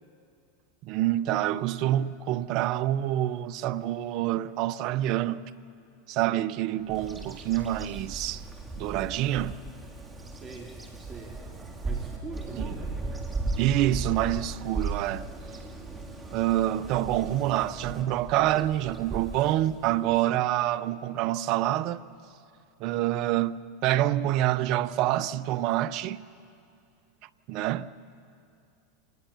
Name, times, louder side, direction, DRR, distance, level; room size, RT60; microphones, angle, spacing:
voice 1, 0.8-5.4 6.1-8.4 8.8-9.6 12.6-12.7 13.6-15.3 16.3-22.1 22.8-26.2 27.5-27.9, right 13 dB, 50° right, 0.7 m, -27 dB
Bird vocalization bird call bird song, 6.9-20.2, right 3 dB, 15° right, 2.9 m, -37 dB
voice 2, 10.3-11.4 11.8-13.0, right 4 dB, 30° right, 2.9 m, -43 dB
27.5 x 19.0 x 5.8 m
hypercardioid pair, 95°, 0 cm